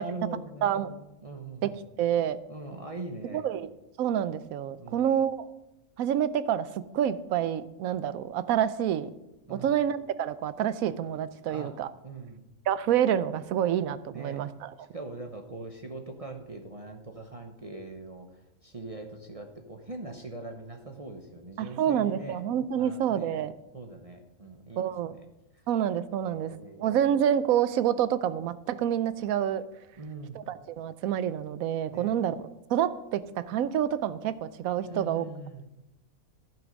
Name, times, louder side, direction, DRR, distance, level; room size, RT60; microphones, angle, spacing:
voice 1, 0.0-1.8 2.5-3.4 4.8-5.1 9.5-9.8 11.5-11.7 12.0-12.5 14.1-14.4 14.9-22.5 22.8-23.4 23.7-25.3 26.2-27.0 30.0-30.5 31.9-32.1 34.8-35.7, right 2 dB, 30° right, 2 dB, 0.9 m, -42 dB
voice 2, 0.6-0.9 1.6-2.4 3.3-3.7 4.0-5.4 6.0-9.1 9.5-11.9 12.7-14.7 21.6-23.5 24.8-25.1 25.7-29.6 30.3-32.4 32.7-35.3, right 10 dB, 75° right, 15 dB, 1.1 m, -28 dB
15.0 x 6.0 x 5.3 m, 0.92 s
omnidirectional pair, 1.5 m